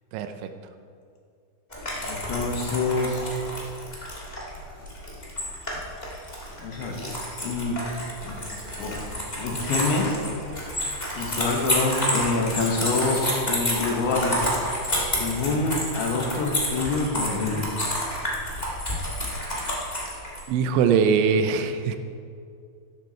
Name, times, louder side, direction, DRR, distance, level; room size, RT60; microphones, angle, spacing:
sound 1, 1.7-20.4, equal, 20° left, 1.1 m, -30 dB
voice 1, 2.0-3.3 6.6-7.0 7.4-7.8 8.2-8.4 8.8-8.9 9.4-10.2 11.1-13.2 13.5-14.4 15.2-17.6, left 3 dB, 85° left, 0 dB, 4.2 m, -26 dB
voice 2, 20.5-22.0, right 6 dB, 85° right, 8 dB, 3.1 m, -21 dB
14.0 x 12.0 x 4.5 m, 2.3 s
omnidirectional pair, 5.2 m